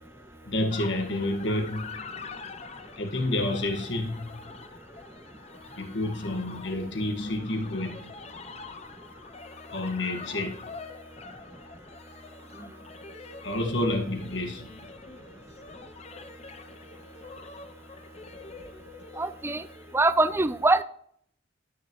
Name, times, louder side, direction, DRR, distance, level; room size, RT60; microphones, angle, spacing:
voice 1, 0.5-1.9 3.0-4.2 5.8-8.1 9.7-10.6 13.4-14.7 19.0-19.1, left 1 dB, 65° left, 1.7 m, -29 dB
sound 1, 0.7-20.2, left 4 dB, 35° left, 0.6 m, -46 dB
voice 2, 19.2-19.7 19.9-20.8, right 2 dB, 10° right, 0.3 m, -23 dB
11.5 x 6.4 x 3.1 m
head